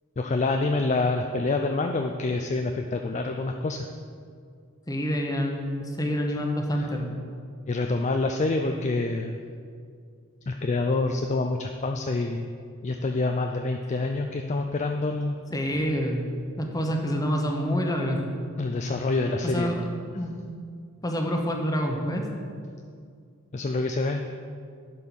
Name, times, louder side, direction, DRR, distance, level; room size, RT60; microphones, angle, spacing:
voice 1, 0.2-3.9 6.7-6.9 7.7-9.4 10.5-12.5 12.8-15.4 18.6-19.8 23.5-24.2, left 3 dB, 30° left, 4 dB, 0.4 m, -27 dB
voice 2, 4.9-7.1 15.5-16.2 16.6-18.2 19.4-19.9 20.1-20.4 21.0-22.3, equal, 15° left, 2 dB, 1.0 m, -27 dB
11.0 x 5.5 x 6.2 m, 2.2 s
head